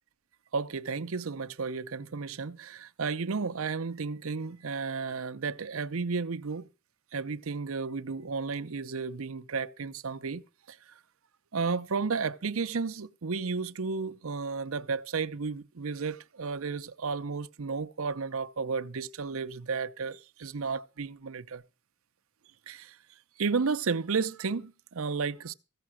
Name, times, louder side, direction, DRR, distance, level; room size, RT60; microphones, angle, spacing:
voice 1, 0.5-6.7 7.1-10.8 11.5-21.6 22.7-23.0 23.4-25.5, right 4 dB, 75° right, 0.7 m, -33 dB
15.5 x 6.7 x 6.2 m
head